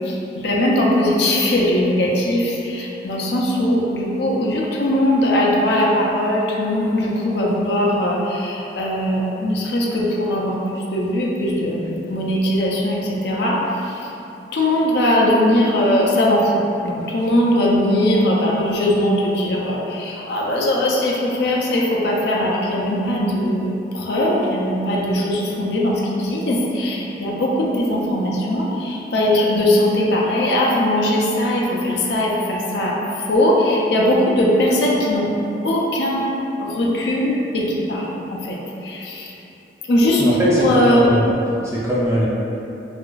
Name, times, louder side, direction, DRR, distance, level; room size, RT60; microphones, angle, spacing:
voice 1, 0.0-14.1 14.5-35.3 35.6-36.2 36.5-38.6 38.8-39.3 39.9-41.0, left 1 dB, 65° left, -4 dB, 0.4 m, -20 dB
voice 2, 40.2-41.2 41.6-42.3, right 1 dB, 15° right, -8 dB, 0.4 m, -21 dB
2.8 x 2.4 x 2.3 m, 2.9 s
head